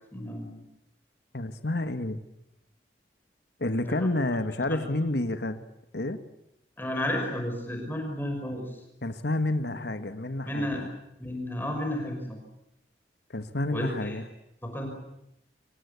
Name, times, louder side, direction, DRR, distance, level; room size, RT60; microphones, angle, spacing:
voice 1, 0.1-0.6 3.8-4.1 4.7-4.8 6.8-8.6 10.4-10.8 11.2-12.4 13.7-14.2 14.6-14.9, left 1 dB, 10° left, 2 dB, 5.7 m, -32 dB
voice 2, 1.3-2.2 3.6-5.6 5.9-6.2 9.0-10.8 13.3-14.2, left 2 dB, 70° left, 10 dB, 1.6 m, -29 dB
25.0 x 23.0 x 8.4 m, 0.85 s
head